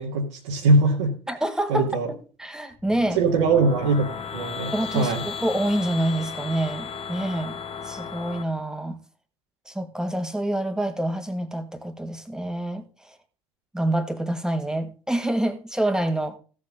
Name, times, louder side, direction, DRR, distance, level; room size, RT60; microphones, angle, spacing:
voice 1, 0.0-1.2 1.7-2.1 3.2-5.2, right 3 dB, 75° right, 1.8 m, -22 dB
voice 2, 1.3-3.2 4.7-7.6 7.8-9.0 9.7-13.2 13.7-16.4, right 1 dB, 5° right, 2.0 m, -27 dB
sound 1, 2.7-8.4, left 6 dB, 40° left, 1.6 m, -35 dB
15.5 x 7.6 x 3.9 m
figure-of-eight pair, 55°, 15 cm